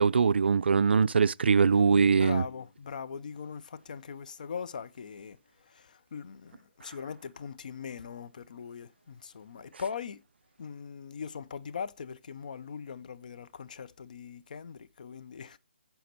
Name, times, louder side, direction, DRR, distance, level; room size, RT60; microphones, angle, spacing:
voice 1, 0.0-2.4, right 5 dB, 70° right, 0.4 m, -22 dB
voice 2, 2.1-5.4 5.6-10.2 10.6-15.6, left 6 dB, 45° left, 0.6 m, -41 dB
9.4 x 5.7 x 4.4 m
hypercardioid pair, 170°, 6 cm